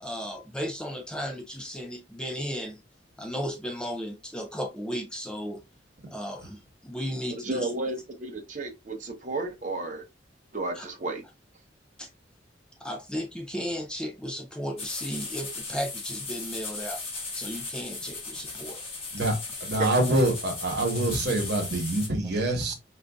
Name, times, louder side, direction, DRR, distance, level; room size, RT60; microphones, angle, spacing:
voice 1, 0.0-2.8 3.2-5.6 6.1-7.7 10.7-10.9 12.0-12.1 12.8-17.0 17.3-18.8, equal, 5° left, 0.3 m, -35 dB
voice 2, 7.4-10.0 10.5-11.2 19.8-19.9, right 2 dB, 40° right, 0.7 m, -32 dB
sound 1, 14.8-22.1, left 3 dB, 30° left, 1.2 m, -37 dB
voice 3, 19.6-22.7, right 1 dB, 60° right, 1.1 m, -25 dB
5.1 x 2.5 x 2.2 m
head